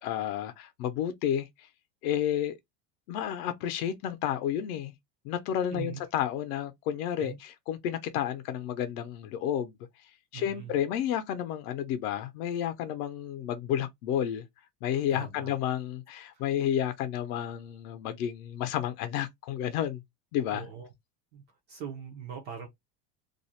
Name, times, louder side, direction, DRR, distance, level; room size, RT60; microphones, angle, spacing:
voice 1, 0.0-1.7 2.0-2.5 3.1-4.9 5.2-9.7 10.3-14.5 14.8-20.0 20.3-20.7, left 10 dB, 65° left, 0.7 m, -31 dB
voice 2, 10.3-10.7 15.1-15.6 16.3-16.5 20.5-20.9 21.3-22.7, right 7 dB, 25° right, 0.3 m, -41 dB
2.5 x 2.0 x 2.8 m
supercardioid pair, 155°, 48 cm